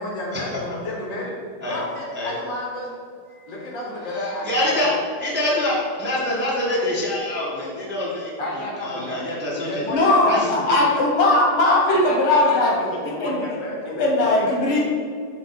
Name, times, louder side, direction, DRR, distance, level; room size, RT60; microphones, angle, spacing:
voice 1, 0.0-1.3 1.6-2.9 3.5-4.9 8.0-8.1 8.4-9.2 9.7-10.9 11.9-14.6, left 1 dB, 60° left, -3 dB, 2.5 m, -31 dB
voice 2, 4.1-4.9 5.2-8.3 8.8-9.8 10.3-10.5, left 1 dB, 5° right, -6 dB, 1.2 m, -25 dB
voice 3, 9.9-13.4 14.0-14.8, left 2 dB, 80° left, -2 dB, 2.2 m, -19 dB
11.0 x 3.7 x 4.1 m, 2.2 s
omnidirectional pair, 2.3 m